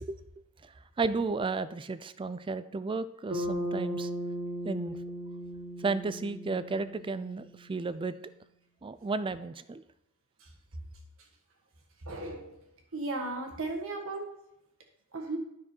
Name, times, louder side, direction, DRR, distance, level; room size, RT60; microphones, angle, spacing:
voice 1, 1.0-4.1 4.6-5.0 5.8-8.2 8.8-9.8, right 3 dB, 25° right, 14 dB, 0.3 m, -33 dB
Bass guitar, 3.3-7.7, equal, 90° right, 3.0 m, -37 dB
voice 2, 12.1-12.5 12.9-14.3 15.1-15.4, right 2 dB, 65° right, 1 dB, 1.6 m, -35 dB
10.0 x 6.1 x 4.5 m, 0.84 s
head